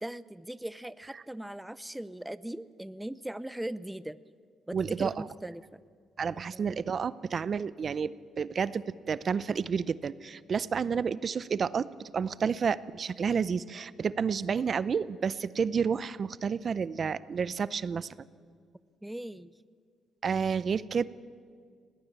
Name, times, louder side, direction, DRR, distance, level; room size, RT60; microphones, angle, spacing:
voice 1, 0.0-4.2 4.7-5.8 6.3-6.8 19.0-19.5, right 1 dB, 5° right, 16 dB, 0.6 m, -39 dB
voice 2, 4.7-5.3 6.2-18.1 20.2-21.0, right 6 dB, 45° right, 18 dB, 0.6 m, -30 dB
20.5 x 18.0 x 8.9 m, 2.1 s
cardioid pair, 90°, 0 cm